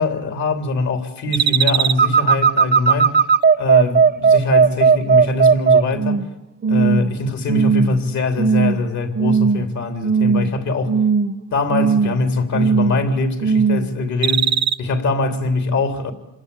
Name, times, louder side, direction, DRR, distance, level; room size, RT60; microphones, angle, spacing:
voice 1, 0.0-3.1 3.6-6.2 6.7-11.0 11.5-14.5 14.8-16.1, left 3 dB, 70° left, 3.5 m, -22 dB
sound 1, 1.3-6.3 6.6-7.1 7.5-8.0 8.4-8.8 9.2-9.7 10.0-10.6 10.9-11.4 11.7-12.2 12.5-13.0 13.4-13.9 14.2-14.7, right 6 dB, 35° right, 0.9 m, -16 dB
27.5 x 21.5 x 8.5 m
cardioid pair, 90°, 30 cm